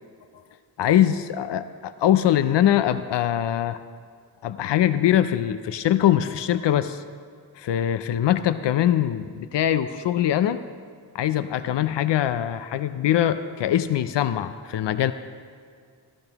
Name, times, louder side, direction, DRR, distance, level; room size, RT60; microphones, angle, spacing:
voice 1, 0.8-3.8 4.4-7.0 7.6-10.6 11.1-15.1, left 11 dB, 85° left, 12 dB, 0.5 m, -22 dB
15.5 x 12.5 x 2.9 m, 2.2 s
wide cardioid pair, 95°, 41 cm